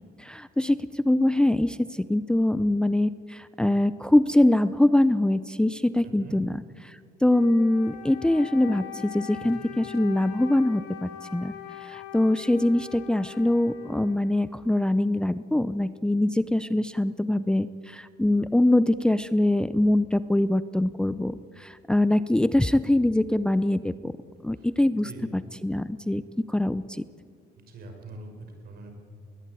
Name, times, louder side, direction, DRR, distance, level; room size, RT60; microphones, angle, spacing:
voice 1, 0.0-6.6 6.8-11.5 11.8-24.1 24.4-26.2 26.5-27.0, left 1 dB, 5° left, 14 dB, 0.6 m, -23 dB
voice 2, 6.0-6.4 9.4-9.5 24.6-24.7 25.0-25.2 27.7-28.9, right 3 dB, 65° right, 4 dB, 6.0 m, -43 dB
Wind instrument woodwind instrument, 7.3-14.8, left 9 dB, 85° left, 3.7 m, -42 dB
20.5 x 20.5 x 9.4 m, 2.1 s
cardioid pair, 110°, 17 cm